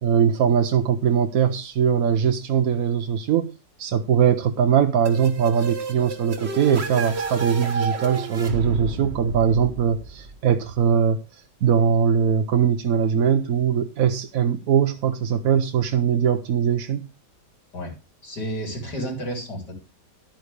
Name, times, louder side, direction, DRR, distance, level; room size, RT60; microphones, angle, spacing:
voice 1, 0.0-3.5 3.8-11.2 11.6-17.1, right 8 dB, 60° right, 1.1 m, -21 dB
sound 1, 5.1-10.7, right 4 dB, 40° right, 1.5 m, -31 dB
voice 2, 18.2-19.7, equal, 70° left, 4.0 m, -31 dB
12.0 x 9.1 x 3.3 m
omnidirectional pair, 1.9 m